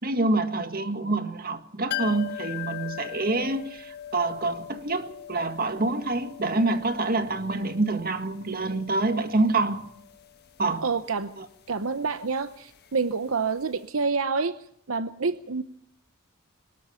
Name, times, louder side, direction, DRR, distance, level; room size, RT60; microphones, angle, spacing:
voice 1, 0.0-9.9 10.6-10.8 11.4-11.5, right 2 dB, 45° right, 1.9 m, -26 dB
sound 1, 1.9-13.5 13.8-13.9, left 13 dB, 50° left, 1.5 m, -41 dB
voice 2, 10.8-11.3 11.7-14.6 14.9-15.6, right 4 dB, 75° right, 0.9 m, -28 dB
23.0 x 20.0 x 5.8 m
head